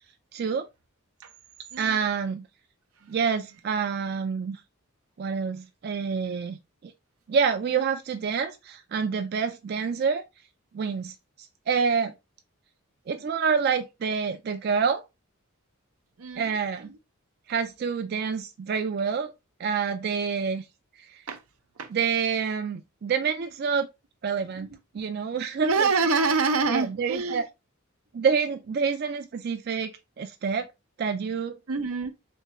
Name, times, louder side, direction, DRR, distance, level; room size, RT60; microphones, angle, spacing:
voice 1, 0.3-0.7 1.8-2.5 3.1-4.6 5.2-6.9 7.3-10.3 10.7-11.1 11.7-12.1 13.1-15.0 16.4-16.9 17.5-19.3 19.6-20.6 21.1-21.2 21.9-23.9 24.2-24.7 24.9-25.9 26.7-27.4 28.1-29.9 30.2-30.7 31.0-31.6, right 6 dB, 45° right, 0.3 m, -27 dB
voice 2, 1.7-2.0 3.0-3.1 16.2-16.6 16.9-17.0 21.3-21.4 21.8-21.9 25.6-27.4 31.7-32.1, right 4 dB, 90° right, 0.7 m, -26 dB
3.6 x 3.2 x 2.9 m
head